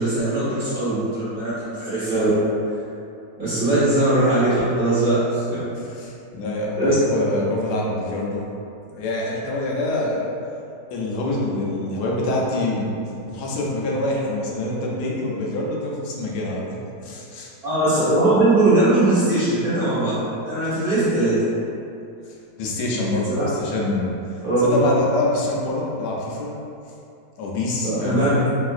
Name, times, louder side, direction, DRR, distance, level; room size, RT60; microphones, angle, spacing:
voice 1, 0.0-2.3 3.4-5.6 6.8-6.9 8.9-9.0 17.6-20.1 20.4-21.4 23.3-23.5 24.4-24.7 27.8-28.5, right 2 dB, 35° right, -14 dB, 1.2 m, -20 dB
voice 2, 6.0-8.5 9.0-10.3 10.9-13.0 13.3-16.6 17.0-17.5 22.6-24.2 24.6-26.5 27.4-28.5, left 2 dB, 75° left, -3 dB, 1.1 m, -25 dB
3.2 x 2.7 x 2.4 m, 2.6 s
omnidirectional pair, 1.8 m